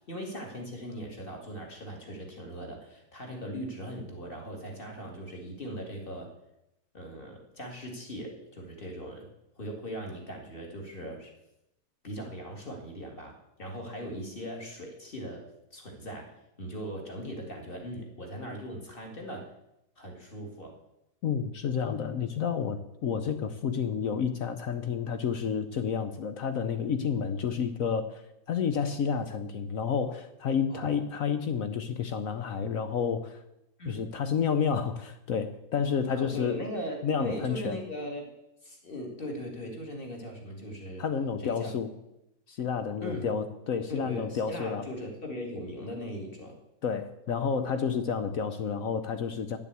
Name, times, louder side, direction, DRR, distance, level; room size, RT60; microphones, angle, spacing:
voice 1, 0.1-6.3 6.9-9.3 9.6-11.3 12.0-19.5 20.0-20.8 30.7-31.0 33.8-34.1 36.1-38.3 38.6-41.0 41.4-41.7 43.0-43.3 43.9-46.6, equal, 25° left, 1 dB, 2.4 m, -39 dB
voice 2, 21.2-28.2 28.5-33.4 33.8-36.6 37.0-37.8 41.0-41.9 42.5-44.9 46.8-49.6, left 6 dB, 70° left, 10 dB, 0.8 m, -30 dB
10.5 x 7.3 x 8.3 m, 0.86 s
omnidirectional pair, 2.3 m